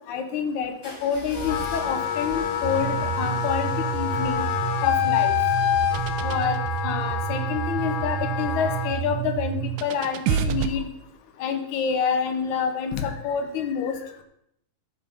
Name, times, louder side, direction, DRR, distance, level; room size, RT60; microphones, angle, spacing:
voice 1, 0.1-4.4 4.8-5.3 6.2-10.9 11.4-14.0, left 7 dB, 65° left, 6 dB, 2.3 m, -27 dB
sound 1, 0.8-6.8, equal, 30° left, 4.5 m, -41 dB
Wind instrument woodwind instrument, 1.3-9.0, left 11 dB, 85° left, 2.3 m, -27 dB
sound 2, 2.6-10.7, right 10 dB, 80° right, 1.9 m, -29 dB
12.0 x 7.7 x 4.2 m, 0.74 s
omnidirectional pair, 4.0 m